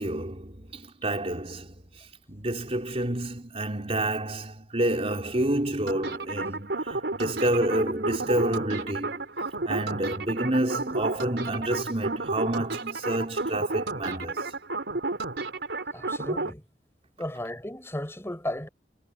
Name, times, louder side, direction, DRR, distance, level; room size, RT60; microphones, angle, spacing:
voice 1, 0.0-9.3 9.6-14.6, right 1 dB, 35° right, 4.1 m, -29 dB
sound 1, 5.9-16.5, right 3 dB, 80° right, 4.2 m, -31 dB
voice 2, 15.9-16.6 17.2-18.7, left 1 dB, 15° left, 7.0 m, -34 dB
head